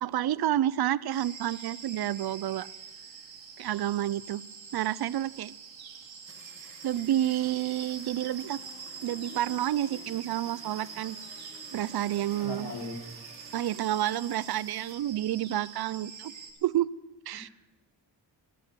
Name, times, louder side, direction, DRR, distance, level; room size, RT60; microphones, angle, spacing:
voice 1, 0.0-2.7 3.6-4.4 4.7-5.5 6.8-8.6 9.0-11.2 11.7-12.7 13.5-16.3 16.6-16.9 17.3-17.5, right 12 dB, 60° right, 20 dB, 0.5 m, -29 dB
sound 1, 1.1-16.5, right 6 dB, 80° right, 2.4 m, -45 dB
sound 2, 6.2-15.0, right 4 dB, 30° right, 1.4 m, -55 dB
sound 3, 7.2-14.3, left 1 dB, 30° left, 4.8 m, -53 dB
voice 2, 12.4-13.0 17.3-17.5, left 3 dB, 85° left, 0 dB, 3.9 m, -39 dB
13.5 x 13.5 x 6.8 m, 1.0 s
wide cardioid pair, 160°, 45 cm